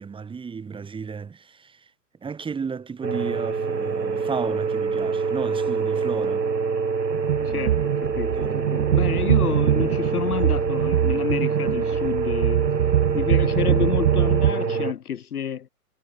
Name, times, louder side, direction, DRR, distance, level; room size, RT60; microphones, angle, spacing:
voice 1, 0.0-1.9 2.2-6.5 8.4-8.6, right 5 dB, 10° right, 4.7 m, -33 dB
sound 1, 3.0-14.9, right 5 dB, 85° right, 1.3 m, -26 dB
sound 2, 7.1-14.5, right 11 dB, 60° right, 0.5 m, -23 dB
voice 2, 7.4-12.7 13.1-15.7, left 8 dB, 65° left, 0.9 m, -29 dB
figure-of-eight pair, 115°, 48 cm